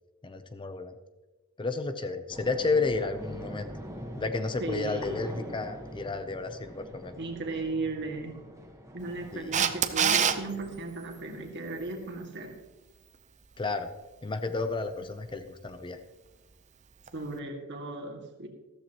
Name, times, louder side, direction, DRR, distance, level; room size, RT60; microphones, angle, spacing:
voice 1, 0.2-0.9 1.6-3.7 4.2-7.2 9.3-9.5 13.6-13.9 14.2-16.0, left 3 dB, 20° left, 9 dB, 0.5 m, -32 dB
sound 1, 2.3-10.8, equal, 15° right, 1.3 m, -44 dB
voice 2, 4.6-5.2 7.2-8.4 8.9-12.6 17.1-18.5, right 2 dB, 55° right, 2 dB, 2.0 m, -36 dB
Camera, 9.5-10.4 17.1-17.2, right 7 dB, 35° right, 0.6 m, -24 dB
14.0 x 13.5 x 3.0 m, 1.2 s
head